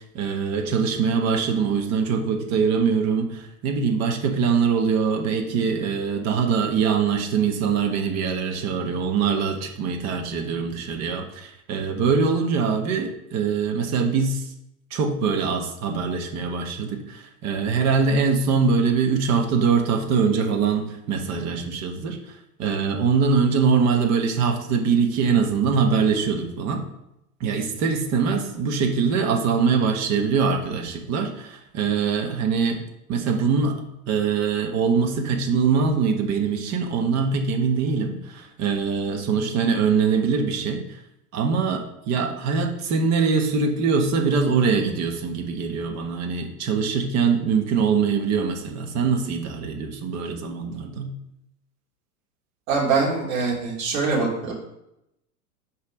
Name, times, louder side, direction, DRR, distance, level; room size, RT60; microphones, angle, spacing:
voice 1, 0.1-14.4 14.9-26.8 27.4-32.8 33.1-41.0 41.3-51.1, right 5 dB, 35° right, 4 dB, 1.3 m, -23 dB
voice 2, 52.7-54.6, right 4 dB, 60° right, -3 dB, 3.1 m, -23 dB
5.3 x 4.7 x 6.3 m, 0.83 s
figure-of-eight pair, 95°, 46 cm